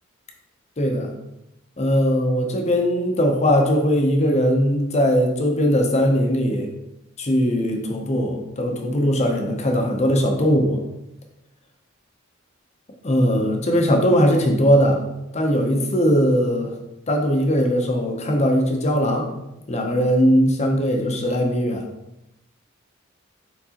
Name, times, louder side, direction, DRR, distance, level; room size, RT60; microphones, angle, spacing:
voice 1, 0.8-1.1 1.8-6.7 7.2-10.8 13.0-15.0 15.3-16.7 17.1-19.3 19.7-21.8, equal, 35° left, 2 dB, 0.7 m, -20 dB
4.5 x 4.0 x 2.9 m, 0.91 s
head